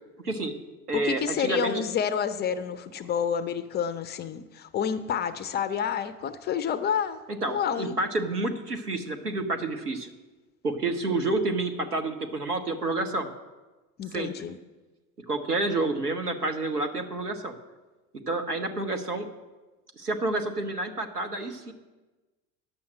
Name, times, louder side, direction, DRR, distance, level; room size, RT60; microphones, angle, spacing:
voice 1, 0.2-0.6 0.9-1.8 7.3-10.1 10.6-13.3 14.1-14.3 15.3-17.5 18.3-19.3 20.0-21.7, right 2 dB, 90° right, 6 dB, 0.9 m, -29 dB
voice 2, 0.9-7.2 7.5-8.0 14.0-14.6, left 8 dB, 25° left, 13 dB, 0.4 m, -29 dB
10.5 x 7.1 x 6.3 m, 1.2 s
figure-of-eight pair, 70°, 45 cm